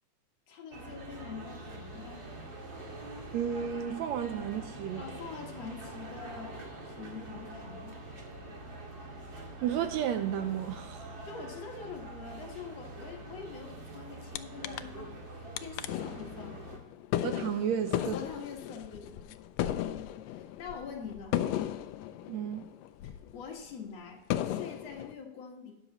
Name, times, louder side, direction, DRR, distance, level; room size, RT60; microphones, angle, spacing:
voice 1, 0.5-2.2 5.0-6.6 6.8-8.0 11.2-16.6 18.0-19.4 19.8-21.4 23.0-25.8, left 6 dB, 60° left, 2.4 m, -45 dB
sound 1, 0.7-16.8, right 2 dB, 40° right, 2.4 m, -45 dB
voice 2, 3.3-5.0 9.6-11.1 17.2-18.1 22.3-22.6, right 9 dB, 75° right, 1.7 m, -32 dB
sound 2, 14.4-14.5 14.6-15.2 15.6-23.4 23.8-23.9 24.3-25.1, left 12 dB, 80° left, 1.6 m, -35 dB
12.5 x 9.6 x 3.0 m
omnidirectional pair, 3.5 m